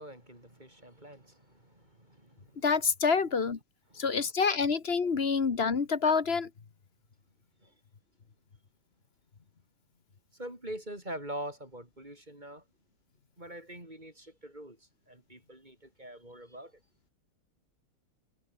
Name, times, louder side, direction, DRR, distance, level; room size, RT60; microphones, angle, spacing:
voice 1, 0.0-2.7 3.9-4.2 7.6-7.7 10.3-12.6 13.4-16.8, right 1 dB, 20° right, 5.7 m, -44 dB
voice 2, 2.6-3.6 4.0-6.5, left 5 dB, 35° left, 1.3 m, -27 dB
omnidirectional pair, 2.3 m